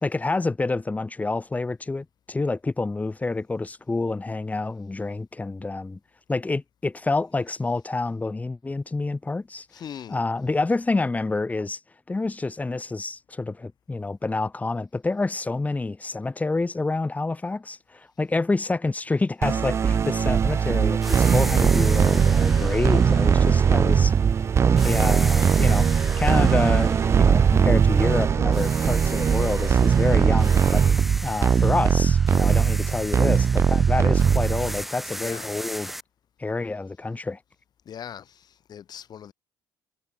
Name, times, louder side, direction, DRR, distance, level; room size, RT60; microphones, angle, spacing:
voice 1, 0.0-6.0 6.3-9.7 10.1-11.8 12.1-24.1 24.7-30.8 31.2-35.9 36.4-37.4, left 3 dB, 15° left, 3.1 m, -28 dB
voice 2, 9.7-10.2 22.6-23.2 35.2-35.5 37.8-39.3, left 9 dB, 50° left, 3.4 m, -41 dB
sound 1, 19.4-34.8, right 7 dB, 30° right, 0.3 m, -20 dB
sound 2, 21.0-24.3 24.8-28.1 28.5-36.0, equal, ahead, 7.0 m, -38 dB
cardioid pair, 105°, 9 cm